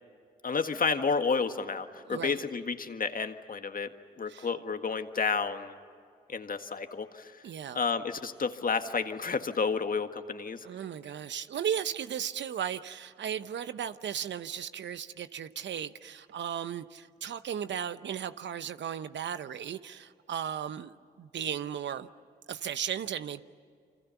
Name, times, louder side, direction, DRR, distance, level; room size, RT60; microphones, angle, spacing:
voice 1, 0.4-5.8 6.3-7.4 7.7-10.7, left 5 dB, 45° left, 8 dB, 1.7 m, -31 dB
voice 2, 2.1-2.4 4.3-4.5 7.4-7.8 10.6-22.1 22.5-23.4, right 9 dB, 70° right, 13 dB, 0.9 m, -36 dB
28.5 x 25.5 x 7.1 m, 2.3 s
supercardioid pair, 45°, 20 cm